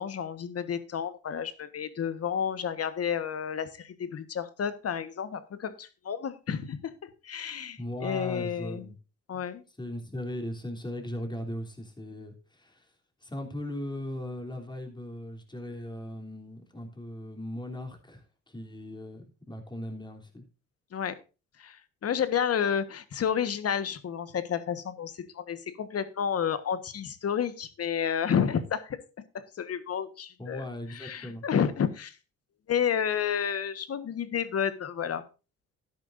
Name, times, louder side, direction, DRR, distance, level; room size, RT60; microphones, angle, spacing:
voice 1, 0.0-8.9 9.3-9.6 20.9-21.1 21.6-30.6 30.9-32.1 32.7-35.2, left 8 dB, 50° left, 1.4 m, -31 dB
voice 2, 7.8-9.0 9.8-12.9 13.2-20.4 30.4-31.4, left 1 dB, 15° left, 3.4 m, -38 dB
13.0 x 10.5 x 2.6 m
cardioid pair, 90°, 30 cm